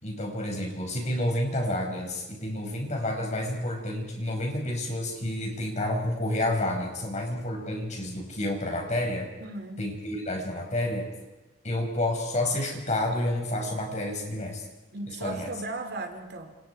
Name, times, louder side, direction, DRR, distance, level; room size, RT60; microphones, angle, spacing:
voice 1, 0.0-9.3 9.8-11.1 11.6-14.7 15.1-15.5, left 1 dB, 40° left, 1 dB, 5.8 m, -29 dB
voice 2, 9.4-9.8 14.9-16.6, right 2 dB, 60° right, 6 dB, 3.0 m, -36 dB
29.0 x 28.0 x 4.8 m, 1.1 s
head